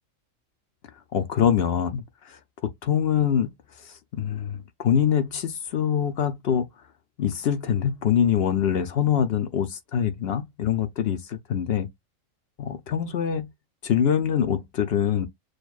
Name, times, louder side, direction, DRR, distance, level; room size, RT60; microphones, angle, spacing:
voice 1, 1.1-3.5 3.8-6.7 7.2-11.9 12.6-13.5 13.8-15.3, left 8 dB, 60° left, 0.7 m, -24 dB
6.5 x 2.3 x 2.4 m
omnidirectional pair, 1.4 m